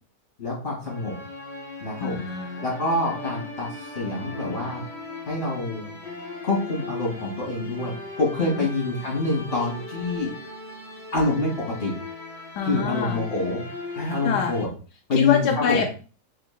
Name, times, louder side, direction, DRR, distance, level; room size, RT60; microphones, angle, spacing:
voice 1, 0.4-1.1 1.8-2.2 2.6-4.8 5.3-5.9 6.4-10.3 11.1-11.9 12.6-13.6 13.9-14.7 15.1-15.8, left 2 dB, 35° left, -3 dB, 2.7 m, -26 dB
sound 1, 0.8-14.6, left 3 dB, 20° right, 2.1 m, -38 dB
voice 2, 2.0-2.7 8.5-8.7 12.6-13.3 14.2-14.6 15.1-15.8, left 7 dB, 85° left, 2 dB, 1.2 m, -25 dB
5.0 x 3.8 x 2.3 m, 0.36 s
omnidirectional pair, 1.8 m